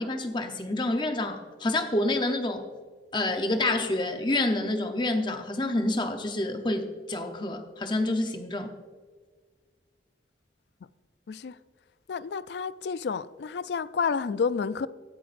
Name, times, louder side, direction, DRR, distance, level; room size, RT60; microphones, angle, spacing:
voice 1, 0.0-2.6 3.1-8.7, left 2 dB, 25° left, 0.8 m, -28 dB
voice 2, 12.1-14.9, left 5 dB, 70° left, 0.4 m, -30 dB
17.0 x 9.9 x 2.6 m
head